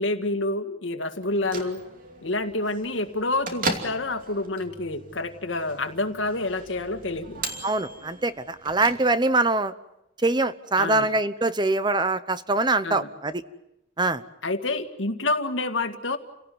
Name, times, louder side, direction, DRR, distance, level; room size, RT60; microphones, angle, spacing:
voice 1, 0.0-1.8 2.2-7.4 10.8-11.1 12.8-13.1 14.4-16.2, left 2 dB, 90° left, 7 dB, 2.1 m, -28 dB
Bell / Microwave oven, 1.2-9.5, right 3 dB, 45° right, 2.8 m, -37 dB
voice 2, 7.6-9.7 10.2-13.4 14.0-14.2, right 2 dB, 25° right, 13 dB, 0.9 m, -23 dB
29.5 x 17.5 x 9.5 m, 0.85 s
head